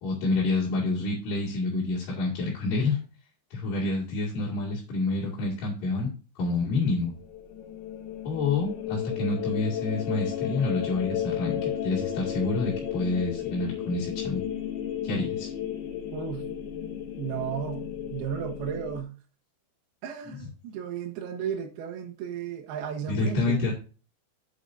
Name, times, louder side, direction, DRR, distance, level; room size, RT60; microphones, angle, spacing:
voice 1, 0.0-3.0 3.5-6.1 6.3-7.1 8.2-14.4 15.0-15.5 20.3-20.4 23.1-23.7, left 3 dB, 50° left, -7 dB, 3.3 m, -28 dB
sound 1, 7.1-19.0, left 10 dB, 70° left, 2.5 m, -33 dB
voice 2, 16.1-16.4 17.2-19.1 20.0-23.7, right 8 dB, 70° right, 0 dB, 2.6 m, -34 dB
10.0 x 7.7 x 2.7 m, 0.35 s
omnidirectional pair, 5.8 m